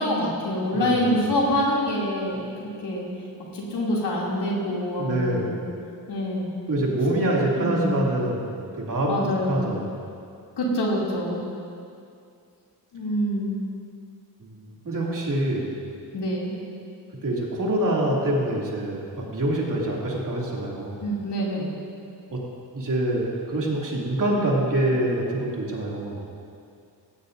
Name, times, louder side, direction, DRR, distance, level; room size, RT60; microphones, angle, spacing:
voice 1, 0.0-3.0 3.5-5.6 6.1-6.5 7.6-8.0 9.1-9.7 10.6-11.4 12.9-13.5 16.1-16.6 21.0-21.7, equal, 90° left, -5 dB, 2.9 m, -26 dB
voice 2, 0.7-1.2 5.0-5.6 6.7-9.2 9.5-10.0 14.4-15.8 17.2-21.0 22.3-22.4 22.7-26.3, right 1 dB, 50° right, -4 dB, 2.8 m, -25 dB
17.5 x 15.5 x 2.7 m, 2.4 s
wide cardioid pair, 115°, 40 cm